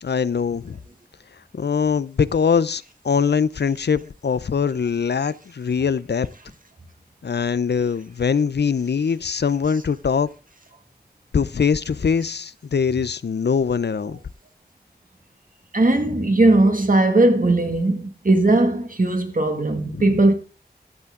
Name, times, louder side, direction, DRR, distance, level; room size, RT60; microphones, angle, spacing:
voice 1, 0.0-0.8 1.5-6.3 7.2-10.3 11.3-14.2 19.9-20.2, left 6 dB, 85° left, 0.5 m, -22 dB
voice 2, 15.7-20.3, right 2 dB, 50° right, 1.7 m, -18 dB
13.5 x 8.3 x 3.6 m
wide cardioid pair, 60°, 17 cm